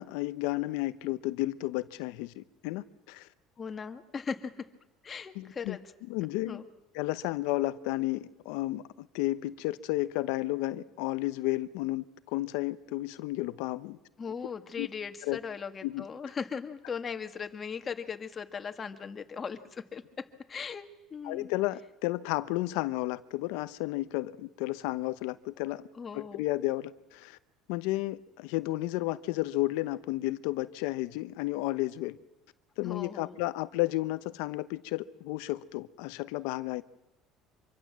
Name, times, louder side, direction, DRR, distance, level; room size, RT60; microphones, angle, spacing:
voice 1, 0.0-3.3 5.3-5.8 6.1-6.6 6.9-14.0 14.8-14.9 15.2-15.4 15.8-16.0 21.2-25.9 26.1-27.4 27.7-32.2 32.8-36.8, left 18 dB, 80° left, 0.9 m, -32 dB
voice 2, 3.6-4.7 5.0-5.8 6.5-6.6 14.2-20.9 21.1-21.5 25.9-26.4 32.8-33.4, left 6 dB, 30° left, 2.0 m, -38 dB
25.5 x 24.0 x 7.6 m
cardioid pair, 115°, 0 cm